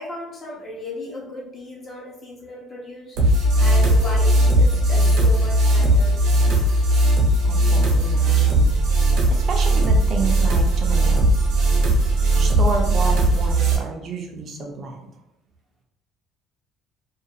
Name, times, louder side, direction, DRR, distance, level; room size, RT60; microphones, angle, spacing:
voice 1, 0.0-3.2 3.6-6.2, left 1 dB, 30° left, -3 dB, 0.9 m, -35 dB
sound 1, 3.2-13.8, right 1 dB, 75° right, 0.8 m, -18 dB
voice 2, 7.4-8.7 9.3-11.4 12.4-15.1, right 4 dB, 40° right, 2 dB, 0.5 m, -30 dB
2.5 x 2.4 x 2.7 m, 0.84 s
cardioid pair, 135°, 0 cm